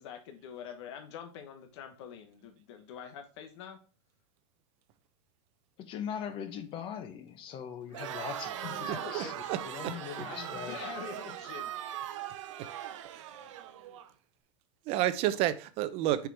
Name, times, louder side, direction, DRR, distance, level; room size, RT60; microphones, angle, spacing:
voice 1, 0.0-3.8 8.6-9.6 10.2-11.7, left 8 dB, 65° left, 1.2 m, -45 dB
voice 2, 5.8-10.8 13.3-13.5, left 8 dB, 35° left, 1.1 m, -41 dB
Crowd, 7.9-14.1, right 11 dB, 85° right, 1.0 m, -40 dB
voice 3, 8.9-9.9 12.6-12.7 13.1-13.5 14.8-16.3, right 13 dB, 40° right, 0.7 m, -31 dB
6.8 x 4.8 x 3.4 m
supercardioid pair, 155°, 16 cm